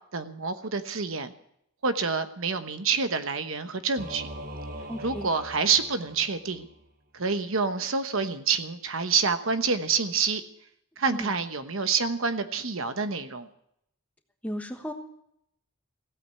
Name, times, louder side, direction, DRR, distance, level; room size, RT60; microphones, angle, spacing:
voice 1, 0.1-1.3 1.8-4.3 5.0-6.7 7.1-10.4 11.0-13.5, right 5 dB, 70° right, 9 dB, 1.1 m, -27 dB
Singing / Musical instrument, 4.0-6.8, right 1 dB, 40° right, 1.4 m, -41 dB
voice 2, 4.9-5.3 11.1-11.3 14.4-14.9, equal, 5° left, 5 dB, 1.2 m, -34 dB
16.0 x 8.8 x 9.3 m, 0.74 s
head